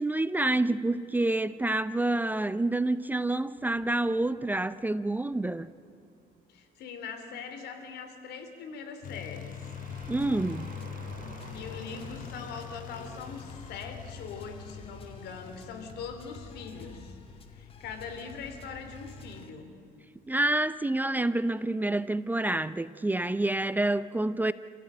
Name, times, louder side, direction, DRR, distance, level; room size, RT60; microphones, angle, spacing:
voice 1, 0.0-5.7 10.1-10.7 20.3-24.5, right 2 dB, 10° right, 15 dB, 0.5 m, -28 dB
sound 1, 3.6-6.4 9.2-16.0, right 5 dB, 65° right, 4.6 m, -53 dB
voice 2, 6.5-9.7 11.3-17.2 17.5-19.7, left 5 dB, 75° left, 7 dB, 3.3 m, -42 dB
sound 2, 9.0-19.5, left 8 dB, 50° left, 0.8 m, -44 dB
sound 3, 9.9-19.5, left 1 dB, 35° left, 2.2 m, -51 dB
28.0 x 15.5 x 8.9 m, 2.6 s
cardioid pair, 110°, 17 cm